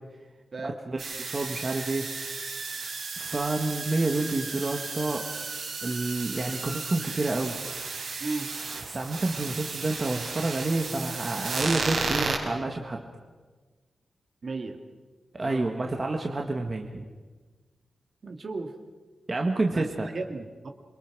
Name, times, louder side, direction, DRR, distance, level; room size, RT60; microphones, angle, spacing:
voice 1, 0.6-2.1 3.2-5.3 5.8-7.6 8.9-13.0 15.3-17.0 19.3-20.1, right 2 dB, 30° right, 2 dB, 1.7 m, -29 dB
sound 1, 1.0-12.4, right 4 dB, 75° right, 4.9 m, -34 dB
voice 2, 14.4-14.8 15.4-15.8 18.2-18.7 19.7-20.7, right 3 dB, 45° right, 5 dB, 2.3 m, -35 dB
27.5 x 23.5 x 6.2 m, 1.3 s
wide cardioid pair, 150°, 0 cm